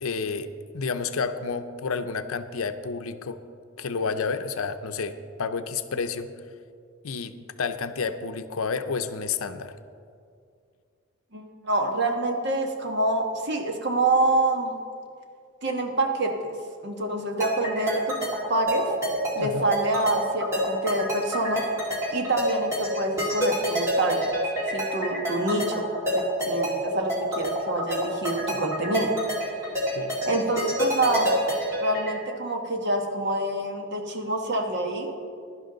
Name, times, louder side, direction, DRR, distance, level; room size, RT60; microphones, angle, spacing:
voice 1, 0.0-3.4 3.8-6.3 7.0-9.7 19.4-19.7 29.9-30.2, left 5 dB, 75° left, 10 dB, 0.6 m, -30 dB
voice 2, 11.3-14.7 15.6-16.5 16.8-18.9 19.3-21.7 22.1-24.3 24.7-29.1 29.4-29.5 30.3-31.3 31.8-35.1, right 2 dB, 50° right, 3 dB, 1.3 m, -26 dB
sound 1, 17.4-32.1, equal, 15° right, 2.3 m, -28 dB
16.0 x 11.0 x 3.9 m, 2.3 s
head